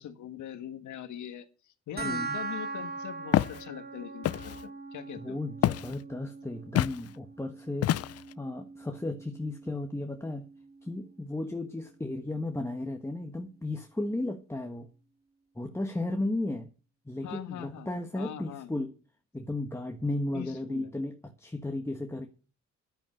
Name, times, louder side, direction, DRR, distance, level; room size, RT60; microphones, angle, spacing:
voice 1, 0.0-1.4 1.9-5.4 17.2-18.7 20.3-20.9, left 10 dB, 75° left, 10 dB, 1.6 m, -42 dB
voice 2, 2.0-2.4 5.2-10.5 10.8-14.9 15.5-16.7 17.0-18.9 19.3-22.3, left 2 dB, 10° left, 4 dB, 1.3 m, -34 dB
sound 1, 2.0-12.9, right 4 dB, 30° right, 2.1 m, -42 dB
Walk footsteps, 3.3-3.6 4.2-4.6 5.6-6.0 6.8-7.0 7.8-8.3, left 12 dB, 55° left, 0.5 m, -26 dB
11.0 x 9.0 x 6.5 m, 0.36 s
cardioid pair, 90°, 30 cm